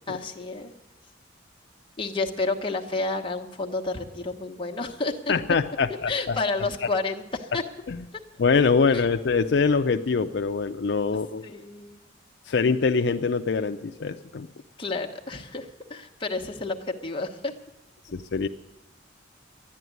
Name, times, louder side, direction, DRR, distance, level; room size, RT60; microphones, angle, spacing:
voice 1, 0.1-0.7 2.0-5.3 6.1-7.6 8.9-9.0 11.4-12.0 14.8-17.5, left 3 dB, 25° left, 1 dB, 1.1 m, -30 dB
voice 2, 5.3-6.4 7.9-8.0 8.4-11.4 12.4-14.5 18.1-18.5, left 4 dB, 60° left, 7 dB, 0.5 m, -24 dB
12.5 x 10.0 x 9.3 m, 0.99 s
head